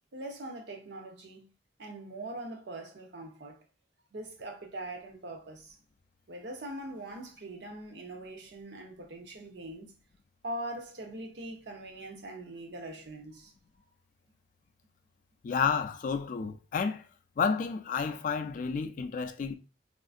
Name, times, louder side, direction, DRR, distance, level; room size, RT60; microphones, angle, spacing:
voice 1, 0.1-1.5 1.8-3.6 4.1-5.7 6.3-9.9 10.4-13.5, right 1 dB, 80° right, 0.7 m, -42 dB
voice 2, 15.4-17.0 17.4-19.5, left 6 dB, 45° left, 0.3 m, -30 dB
3.6 x 2.4 x 2.4 m
head